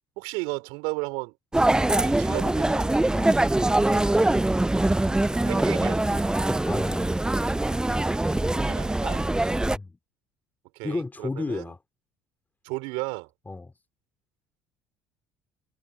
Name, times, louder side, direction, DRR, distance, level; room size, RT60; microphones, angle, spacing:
voice 1, 0.2-1.3 1.9-2.9 5.5-6.0 8.5-9.3 10.7-11.7 12.6-13.3, right 28 dB, 70° right, 3.4 m, -34 dB
sound 1, 1.5-9.8, right 2 dB, 10° right, 0.5 m, -23 dB
voice 2, 3.1-3.4 6.6-7.1 9.7-10.0 10.8-11.8 13.5-13.7, left 3 dB, 20° left, 3.7 m, -32 dB
hypercardioid pair, 60°, 9 cm